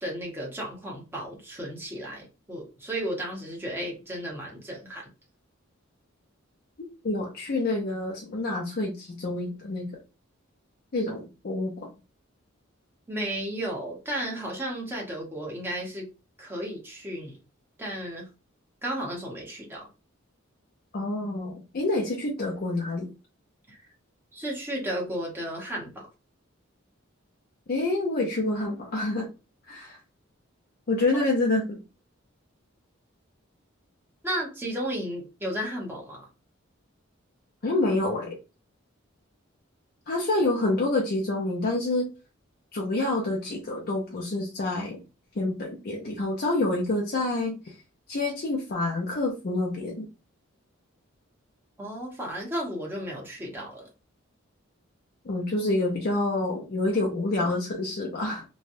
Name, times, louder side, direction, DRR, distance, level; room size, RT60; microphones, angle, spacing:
voice 1, 0.0-5.1 13.1-16.1 16.4-17.4 17.8-18.3 18.8-19.9 23.7-23.8 24.3-26.1 34.2-36.3 51.8-53.9, right 1 dB, 10° right, -2 dB, 1.0 m, -33 dB
voice 2, 7.0-9.9 10.9-11.9 20.9-23.1 27.7-29.3 29.7-30.0 30.9-31.8 37.6-38.4 40.1-42.1 42.7-45.0 45.4-47.6 48.1-50.1 55.2-58.4, left 2 dB, 50° left, -1 dB, 0.5 m, -27 dB
3.1 x 2.3 x 2.6 m, 0.31 s
head